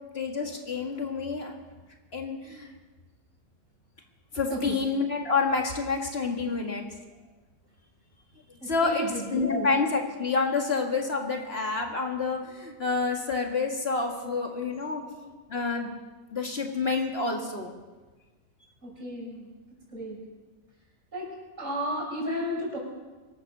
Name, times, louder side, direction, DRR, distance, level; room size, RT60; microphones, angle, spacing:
voice 1, 0.1-1.5 2.1-2.7 4.3-6.8 8.6-15.9 16.3-17.7, left 4 dB, 45° left, 2 dB, 2.0 m, -28 dB
voice 2, 8.6-9.7 18.8-19.5 19.9-20.2 21.1-21.3 21.6-22.8, equal, 60° right, -4 dB, 6.4 m, -32 dB
24.5 x 8.3 x 6.8 m, 1.3 s
omnidirectional pair, 1.5 m